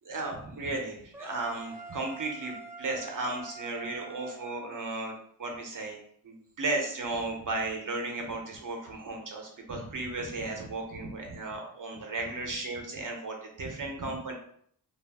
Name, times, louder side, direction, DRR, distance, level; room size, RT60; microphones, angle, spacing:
voice 1, 0.0-14.3, right 2 dB, 50° right, 1 dB, 0.8 m, -35 dB
sound 1, 1.1-5.2, right 3 dB, 5° right, 0.6 m, -46 dB
2.4 x 2.1 x 3.4 m, 0.64 s
wide cardioid pair, 50°, 40 cm